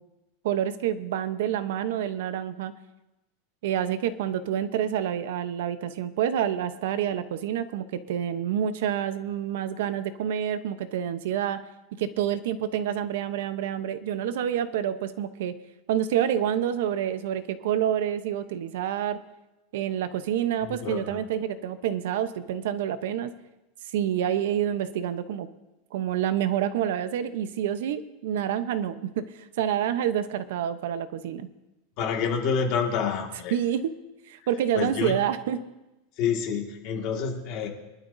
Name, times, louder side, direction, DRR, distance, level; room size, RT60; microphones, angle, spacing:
voice 1, 0.4-2.7 3.6-11.6 12.0-15.5 15.9-19.2 19.7-23.3 23.9-25.5 25.9-31.5 33.5-33.9 34.3-35.6, right 10 dB, 65° right, 12 dB, 0.8 m, -28 dB
voice 2, 20.6-21.2 32.0-33.5 34.8-35.2 36.2-37.7, left 6 dB, 40° left, 2 dB, 1.9 m, -28 dB
24.0 x 12.0 x 2.7 m, 1.0 s
supercardioid pair, 175°, 0 cm